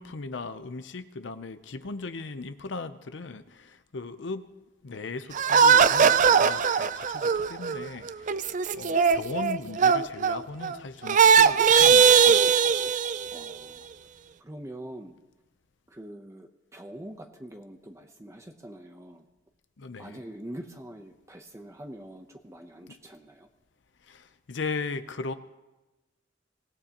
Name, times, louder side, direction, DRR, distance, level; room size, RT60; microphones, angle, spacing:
voice 1, 0.0-4.5 4.8-12.7 19.8-20.2 22.9-23.0 24.0-25.3, left 3 dB, 70° left, 10 dB, 0.6 m, -38 dB
sound 1, 5.3-10.7 11.0-13.5, right 6 dB, 40° right, 0.4 m, -20 dB
voice 2, 13.3-13.8 14.4-15.1 15.9-19.2 20.0-23.5, right 1 dB, 15° right, 4 dB, 0.7 m, -44 dB
24.5 x 17.0 x 2.9 m, 1.1 s
head